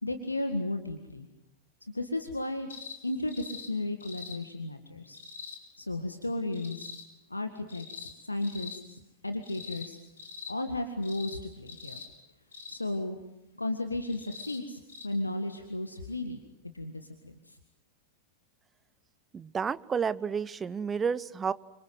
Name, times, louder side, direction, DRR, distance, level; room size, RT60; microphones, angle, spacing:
voice 1, 0.0-1.3 1.9-2.7 3.0-5.2 5.8-6.9 7.3-10.0 10.5-12.0 12.7-13.2 13.6-16.4 16.7-17.6, left 2 dB, 85° left, 7 dB, 1.8 m, -34 dB
sound 1, 2.7-3.0 3.3-3.7 4.0-4.4 5.1-5.6 6.5-7.0 7.7-8.1 8.4-8.8 9.4-9.9 10.2-10.5 11.0-11.4 11.7-12.1 12.5-12.8 14.1-14.6 14.9-15.1 16.1-16.2, left 5 dB, 70° left, 5.5 m, -43 dB
voice 2, 19.3-21.5, right 6 dB, 20° right, 18 dB, 0.9 m, -30 dB
28.5 x 25.5 x 7.8 m, 0.89 s
figure-of-eight pair, 90°, 0 cm